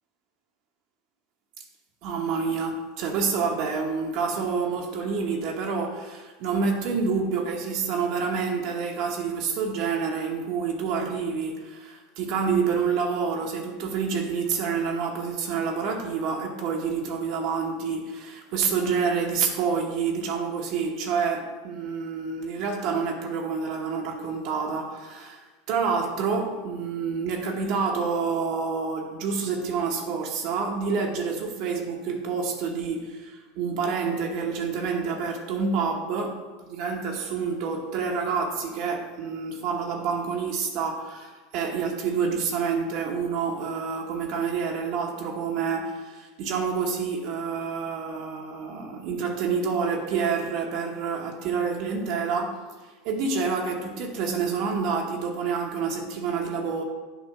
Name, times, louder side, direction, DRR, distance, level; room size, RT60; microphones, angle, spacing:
voice 1, 2.0-52.6 53.0-56.8, right 5 dB, 60° right, 0 dB, 0.9 m, -28 dB
8.1 x 2.8 x 5.7 m, 1.3 s
hypercardioid pair, 90°, 0 cm